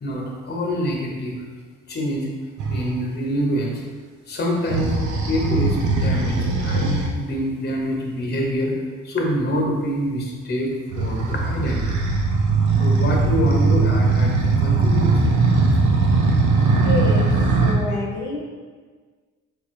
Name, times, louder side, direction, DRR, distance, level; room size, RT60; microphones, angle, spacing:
voice 1, 0.0-1.4 1.9-2.3 2.7-3.8 4.3-4.9 5.3-8.7 9.0-12.0 12.8-15.3, equal, 35° left, -1 dB, 0.9 m, -26 dB
sound 1, 2.6-2.9 4.7-7.1 10.9-17.7, right 3 dB, 75° right, 0.8 m, -19 dB
voice 2, 16.8-18.4, left 2 dB, 85° left, -2 dB, 1.0 m, -28 dB
4.3 x 3.5 x 3.1 m, 1.5 s
cardioid pair, 90°, 30 cm